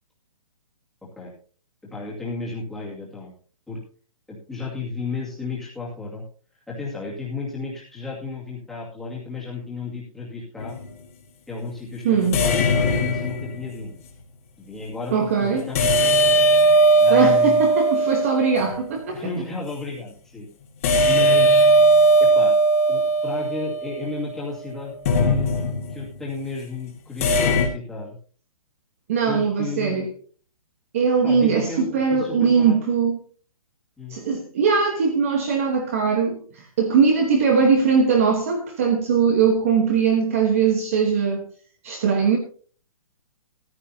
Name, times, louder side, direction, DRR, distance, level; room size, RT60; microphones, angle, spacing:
voice 1, 1.9-3.3 3.7-3.8 4.3-6.2 6.7-10.8 11.5-14.0 14.6-16.1 17.0-17.6 19.1-20.5 21.0-21.8 22.2-22.6 22.9-25.6 25.9-28.2 29.3-30.1 31.2-32.8 34.0-34.2, left 4 dB, ahead, 2.1 m, -33 dB
sound 1, 10.6-10.9 12.3-13.8 15.7-18.8 20.8-24.2 25.0-26.1 27.2-27.7, right 1 dB, 25° left, 1.8 m, -18 dB
voice 2, 12.0-12.4 15.1-15.7 17.1-19.3 29.1-30.1 30.9-33.2 34.1-41.4 41.8-42.4, right 6 dB, 25° right, 1.1 m, -20 dB
14.5 x 12.0 x 2.8 m
hypercardioid pair, 180°, 18 cm